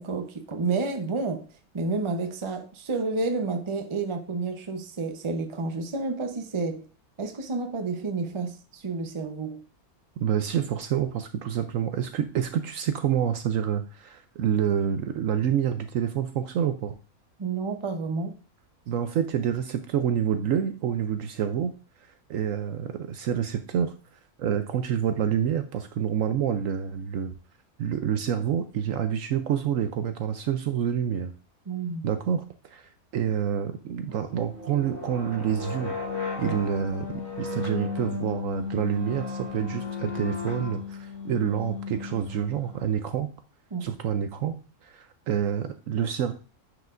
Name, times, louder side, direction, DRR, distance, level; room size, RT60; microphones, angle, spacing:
voice 1, 0.0-1.4 1.7-6.8 7.2-9.6 17.4-18.3 31.7-32.1 36.4-36.6 43.7-43.9, right 3 dB, 30° right, 0.6 m, -30 dB
voice 2, 10.2-16.9 18.9-21.7 22.0-23.9 24.4-27.3 27.8-31.3 32.0-36.0 36.4-43.3 43.8-46.3, right 9 dB, 70° right, 0.9 m, -28 dB
sound 1, 34.1-42.9, left 5 dB, 50° left, 4.0 m, -35 dB
9.4 x 4.9 x 2.5 m
omnidirectional pair, 1.6 m